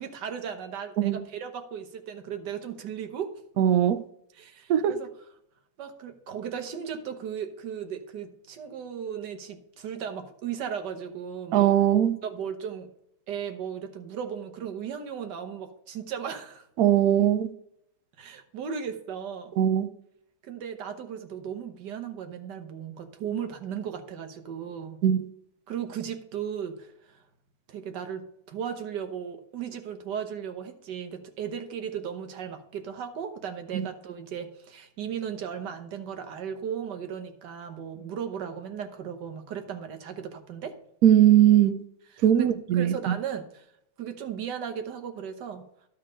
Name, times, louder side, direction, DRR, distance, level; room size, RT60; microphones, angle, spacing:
voice 1, 0.0-3.4 4.3-5.1 5.8-11.7 12.2-12.9 13.3-16.7 18.2-19.5 20.4-25.0 25.7-27.2 27.7-40.8 42.1-43.7 44.0-45.7, right 8 dB, 60° right, 1.4 m, -36 dB
voice 2, 3.6-4.0 4.7-4.9 11.5-12.2 16.8-17.5 19.6-19.9 25.0-25.2 33.7-33.9 41.0-41.8 42.2-43.1, right 11 dB, 85° right, 0.8 m, -20 dB
12.0 x 4.5 x 5.0 m
omnidirectional pair, 2.4 m